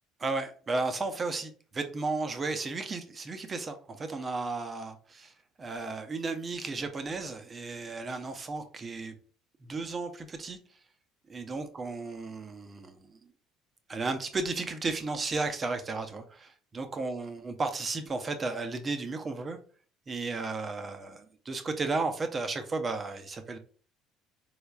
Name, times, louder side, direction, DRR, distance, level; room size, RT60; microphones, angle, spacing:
voice 1, 0.2-5.3 5.6-9.1 9.6-10.6 11.3-13.2 13.9-19.6 20.1-23.6, right 3 dB, 35° right, 7 dB, 0.7 m, -34 dB
3.9 x 3.3 x 2.3 m, 0.41 s
hypercardioid pair, 60°, 0 cm